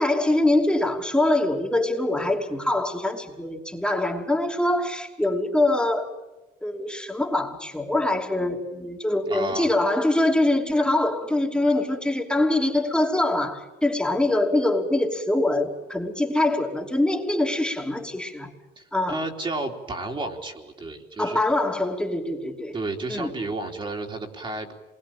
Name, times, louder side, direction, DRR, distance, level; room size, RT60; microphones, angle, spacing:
voice 1, 0.0-6.1 6.6-18.5 18.9-19.2 21.2-22.8 23.1-23.3, left 1 dB, 5° left, 0 dB, 2.9 m, -24 dB
voice 2, 9.3-9.7 18.8-21.4 22.7-24.7, right 2 dB, 30° right, 2 dB, 3.5 m, -32 dB
27.0 x 21.5 x 9.0 m, 1.1 s
cardioid pair, 110°, 17 cm